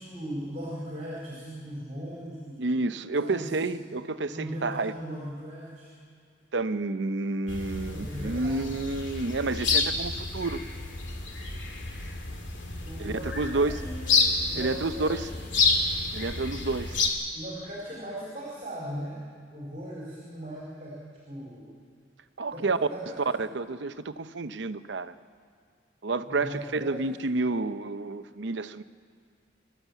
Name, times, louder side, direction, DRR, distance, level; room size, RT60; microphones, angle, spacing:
voice 1, 0.0-2.6 3.2-3.7 4.3-5.9 7.9-8.7 12.8-15.5 17.3-19.2 19.5-21.7 22.5-23.3 26.3-27.1, equal, 35° right, -5 dB, 4.3 m, -39 dB
voice 2, 2.6-4.9 6.5-10.6 13.0-13.8 14.5-15.3 16.1-17.0 22.4-22.8 23.4-25.1 26.0-28.8, right 3 dB, 70° right, 11 dB, 0.7 m, -30 dB
sound 1, 7.5-17.1, left 4 dB, 80° left, 2.3 m, -29 dB
24.0 x 13.0 x 8.2 m, 2.1 s
head